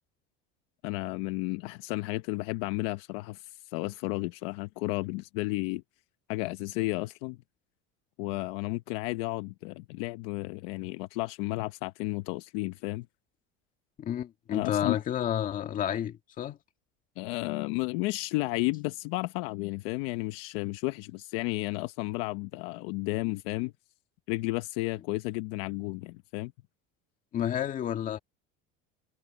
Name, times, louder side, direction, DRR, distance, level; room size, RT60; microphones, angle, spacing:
voice 1, 0.8-5.8 6.3-7.4 8.2-13.1 14.5-15.0 17.2-23.7 24.3-26.5, left 21 dB, 65° left, 0.8 m, -32 dB
voice 2, 14.0-16.6 27.3-28.2, left 10 dB, 25° left, 1.7 m, -30 dB
cardioid pair, 175°, 30 cm